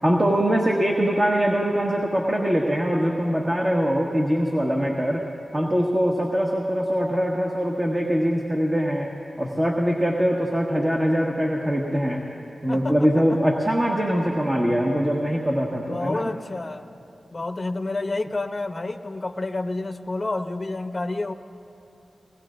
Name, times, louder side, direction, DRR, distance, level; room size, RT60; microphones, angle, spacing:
voice 1, 0.0-5.2 5.5-9.1 9.4-12.2 12.6-16.2, equal, 30° right, -1 dB, 1.5 m, -22 dB
voice 2, 12.7-13.4 15.9-16.9 17.3-21.3, left 2 dB, 40° left, 8 dB, 0.7 m, -29 dB
23.0 x 19.5 x 2.6 m, 2.8 s
cardioid pair, 50°, 0 cm